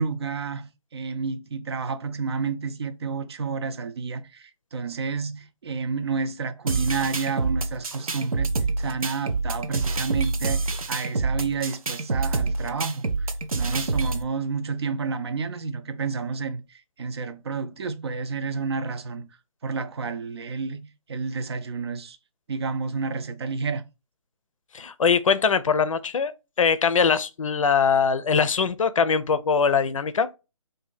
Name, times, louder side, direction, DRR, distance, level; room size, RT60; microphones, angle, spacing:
voice 1, 0.0-16.6 17.0-19.3 19.6-22.2 22.5-23.8, right 5 dB, 50° right, 0.5 m, -30 dB
sound 1, 6.7-14.2, right 3 dB, 90° right, 0.6 m, -27 dB
voice 2, 24.7-26.3 26.6-30.3, left 6 dB, 70° left, 0.5 m, -22 dB
2.8 x 2.6 x 3.9 m
figure-of-eight pair, 155°, 17 cm